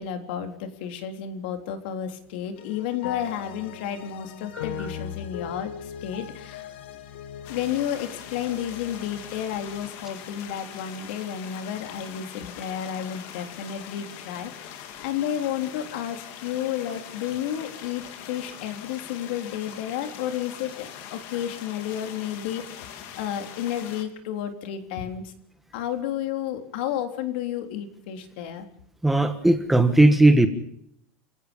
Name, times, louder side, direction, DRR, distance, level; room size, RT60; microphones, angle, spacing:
voice 1, 0.0-6.7 7.5-25.3 25.7-28.7, left 10 dB, 65° left, 7 dB, 3.7 m, -32 dB
sound 1, 2.6-9.9, left 9 dB, 85° left, 2.6 m, -39 dB
sound 2, 7.4-24.0, left 9 dB, 50° left, 3.3 m, -42 dB
voice 2, 29.0-30.5, right 2 dB, 5° right, 8 dB, 1.4 m, -17 dB
29.5 x 17.5 x 5.4 m, 0.71 s
supercardioid pair, 170°, 6 cm